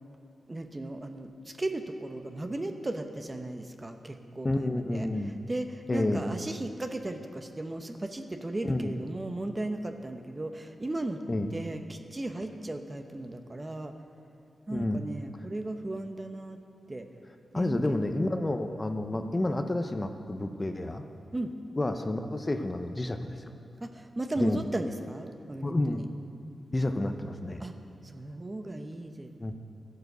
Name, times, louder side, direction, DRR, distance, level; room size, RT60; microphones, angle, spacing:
voice 1, 0.5-11.2 11.5-13.9 14.7-16.6 16.9-17.1 17.5-18.0 21.3-21.5 23.8-26.0 27.6-27.7 28.0-29.5, right 2 dB, 25° right, 6 dB, 0.9 m, -36 dB
voice 2, 4.4-5.4 5.9-6.3 8.6-8.9 11.3-11.5 14.7-15.0 17.5-21.0 21.8-23.5 24.4-24.6 25.6-26.0 26.7-27.6 29.4-29.5, left 2 dB, 25° left, 6 dB, 0.7 m, -30 dB
14.0 x 9.2 x 6.8 m, 2.6 s
cardioid pair, 85°, 0 cm